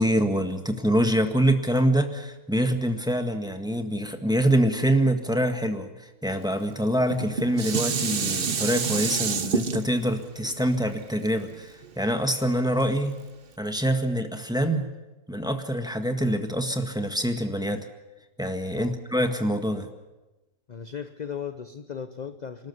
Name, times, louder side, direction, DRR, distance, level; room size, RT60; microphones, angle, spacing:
voice 1, 0.0-13.2 13.6-14.9 15.3-17.9 18.4-19.9, equal, 5° right, 6 dB, 1.6 m, -25 dB
Dishes pots and pans, 7.0-12.3 12.8-12.9, right 5 dB, 40° right, 1.1 m, -29 dB
voice 2, 20.7-22.7, left 7 dB, 40° left, 10 dB, 0.6 m, -36 dB
27.5 x 13.0 x 9.6 m, 1.1 s
omnidirectional pair, 1.7 m